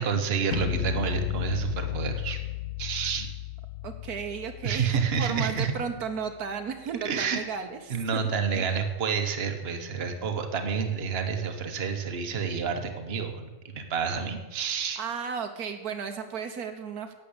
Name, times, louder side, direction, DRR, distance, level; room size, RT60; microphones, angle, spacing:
voice 1, 0.0-2.4 2.8-3.3 4.6-5.7 7.0-7.4 7.9-15.0, right 6 dB, 45° right, 5 dB, 1.3 m, -29 dB
sound 1, 0.5-6.5, left 11 dB, 65° left, 1.0 m, -34 dB
voice 2, 3.8-8.2 8.5-8.7 15.0-17.1, right 6 dB, 80° right, 7 dB, 1.6 m, -34 dB
11.5 x 7.7 x 8.7 m, 1.2 s
omnidirectional pair, 1.6 m